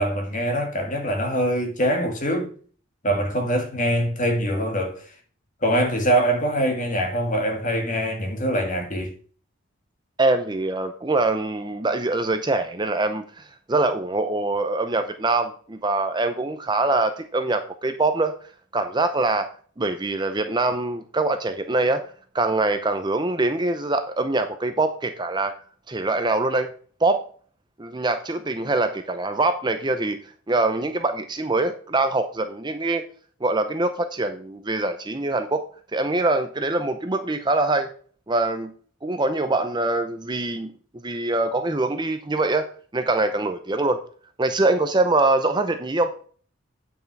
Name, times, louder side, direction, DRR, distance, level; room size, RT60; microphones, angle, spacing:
voice 1, 0.0-2.5 3.0-5.1 5.6-9.1, right 1 dB, 35° left, 1.8 m, -23 dB
voice 2, 10.2-18.3 18.7-19.5 19.8-22.0 22.3-25.5 25.9-26.7 27.0-27.2 27.8-30.2 30.5-33.1 33.4-35.6 35.9-37.9 38.3-38.7 39.0-40.7 41.0-42.7 42.9-44.0 44.4-46.1, right 2 dB, 20° right, 0.6 m, -23 dB
9.2 x 5.7 x 4.7 m
head